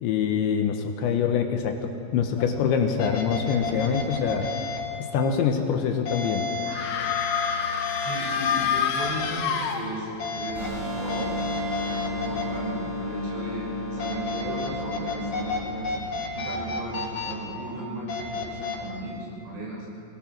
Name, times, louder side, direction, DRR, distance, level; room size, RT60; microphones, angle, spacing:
voice 1, 0.0-4.5 5.0-6.4, left 7 dB, 70° left, 4 dB, 3.3 m, -25 dB
sound 1, 2.4-2.5 3.0-4.8 6.1-8.6 9.0-9.2 10.2-10.7 11.1-12.4 14.0-15.6 15.8-17.3 18.1-18.8, left 4 dB, 40° left, 5.7 m, -31 dB
sound 2, 6.7-10.3, left 7 dB, 85° left, 4.0 m, -28 dB
voice 2, 8.0-11.3 11.8-16.1 16.3-19.9, right 1 dB, 70° right, -4 dB, 8.4 m, -35 dB
sound 3, 10.6-15.6, left 1 dB, 85° right, 8.9 m, -32 dB
26.0 x 19.5 x 6.1 m, 2.5 s
omnidirectional pair, 5.7 m